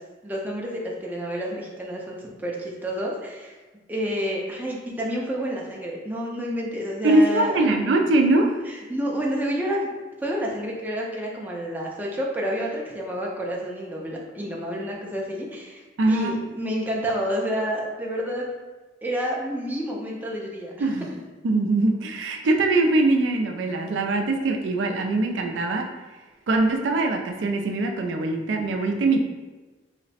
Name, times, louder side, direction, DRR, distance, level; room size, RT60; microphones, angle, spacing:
voice 1, 0.2-3.6 3.9-7.8 8.7-9.9 10.2-18.5 19.0-21.2, equal, 10° right, -3 dB, 0.5 m, -29 dB
voice 2, 7.0-8.6 16.0-16.4 20.8-21.1 21.4-25.9 26.5-29.2, right 2 dB, 80° right, 3 dB, 0.4 m, -22 dB
3.2 x 2.0 x 4.0 m, 1.2 s
head